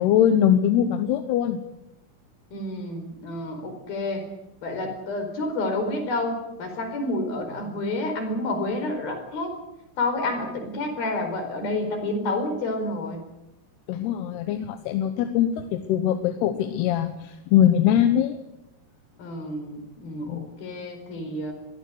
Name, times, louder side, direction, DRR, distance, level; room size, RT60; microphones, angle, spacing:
voice 1, 0.0-1.6 13.9-18.4 20.3-20.5, left 10 dB, 85° left, 8 dB, 3.2 m, -22 dB
voice 2, 2.5-4.2 4.6-9.5 10.0-13.2 19.2-21.5, left 2 dB, 65° left, 5 dB, 6.4 m, -29 dB
22.5 x 16.5 x 9.6 m, 0.90 s
omnidirectional pair, 4.5 m